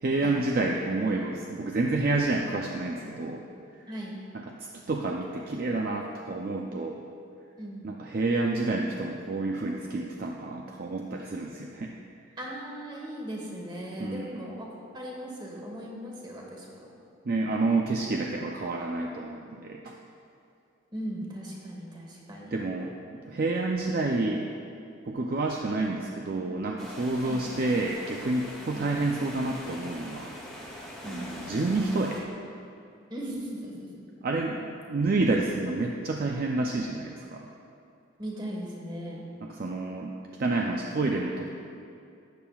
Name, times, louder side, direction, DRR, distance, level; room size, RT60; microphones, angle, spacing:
voice 1, 0.0-3.4 4.6-7.0 7.8-12.0 14.0-14.3 17.2-20.0 22.5-22.9 23.3-24.5 25.0-30.3 31.0-32.2 34.2-37.5 39.4-40.1 40.4-41.5, right 2 dB, 45° right, 0 dB, 0.4 m, -29 dB
voice 2, 3.9-4.2 7.6-7.9 12.4-14.7 14.9-16.9 20.9-22.7 27.2-27.5 28.7-28.9 31.0-31.3 33.1-34.0 38.2-39.2, equal, 20° right, -2 dB, 1.3 m, -38 dB
sound 1, 26.8-32.2, equal, ahead, 1.4 m, -43 dB
12.5 x 8.6 x 2.4 m, 2.5 s
head